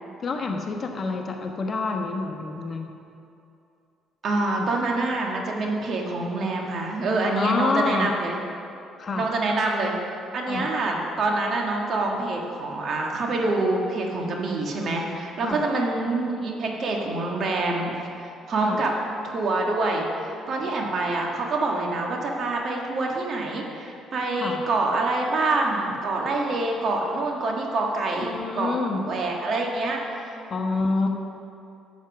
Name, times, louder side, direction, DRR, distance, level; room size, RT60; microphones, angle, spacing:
voice 1, 0.2-2.9 4.6-4.7 7.3-8.1 9.0-9.2 10.5-10.7 15.4-15.6 18.6-18.8 24.3-24.6 28.1-29.1 30.5-31.1, left 3 dB, 45° left, 3 dB, 1.2 m, -27 dB
voice 2, 4.2-8.4 9.1-9.9 10.3-17.9 18.2-18.9 19.2-28.7 29.1-30.4, right 2 dB, 55° right, 0 dB, 1.7 m, -26 dB
9.4 x 7.2 x 6.2 m, 2.6 s
supercardioid pair, 65°, 0 cm